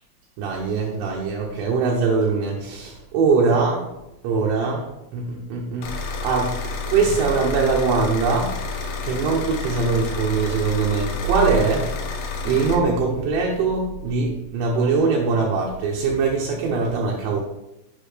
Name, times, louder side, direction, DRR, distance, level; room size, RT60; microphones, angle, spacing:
voice 1, 0.4-3.8 4.2-4.9 5.1-8.5 9.0-11.9 12.2-17.4, right 4 dB, 80° right, -2 dB, 2.6 m, -22 dB
sound 1, 5.8-12.7, left 4 dB, 85° left, 2.3 m, -30 dB
8.3 x 5.3 x 3.3 m, 0.92 s
omnidirectional pair, 6.0 m